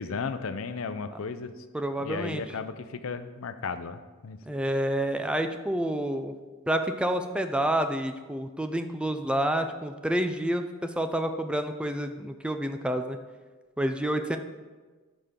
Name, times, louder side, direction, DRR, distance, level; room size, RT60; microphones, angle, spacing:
voice 1, 0.0-1.5 2.0-4.4, left 5 dB, 75° left, 10 dB, 0.5 m, -35 dB
voice 2, 1.7-2.4 4.5-6.3 6.7-13.2 13.8-14.4, right 1 dB, 5° right, 7 dB, 0.4 m, -28 dB
12.0 x 5.2 x 3.7 m, 1.3 s
head